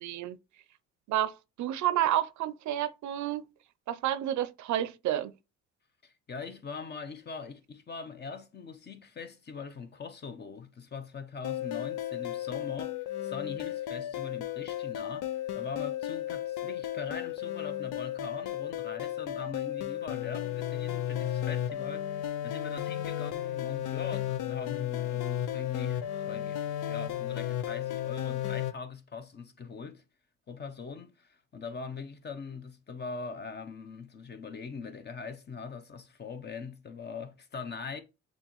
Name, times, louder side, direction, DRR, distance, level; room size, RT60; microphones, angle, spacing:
voice 1, 0.0-0.4 1.1-3.5 3.9-5.3, right 12 dB, 70° right, 0.5 m, -30 dB
voice 2, 6.0-30.0 30.5-38.0, left 5 dB, 35° left, 0.8 m, -42 dB
sound 1, 11.4-28.7, left 11 dB, 85° left, 0.5 m, -34 dB
6.7 x 2.5 x 3.0 m
cardioid pair, 90°, 30 cm